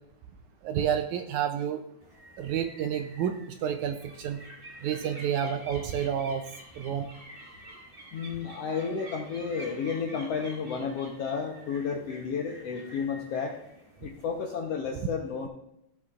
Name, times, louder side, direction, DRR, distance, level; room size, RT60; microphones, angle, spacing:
voice 1, 0.6-1.8 2.4-3.4 3.6-4.4 4.8-6.4 6.8-7.1, right 9 dB, 80° right, 7 dB, 1.8 m, -29 dB
sound 1, 2.0-14.5, right 1 dB, 50° right, 0.6 m, -49 dB
voice 2, 8.1-13.6 14.0-15.5, left 6 dB, 75° left, 1 dB, 1.5 m, -32 dB
15.5 x 6.7 x 2.4 m, 0.79 s
omnidirectional pair, 3.7 m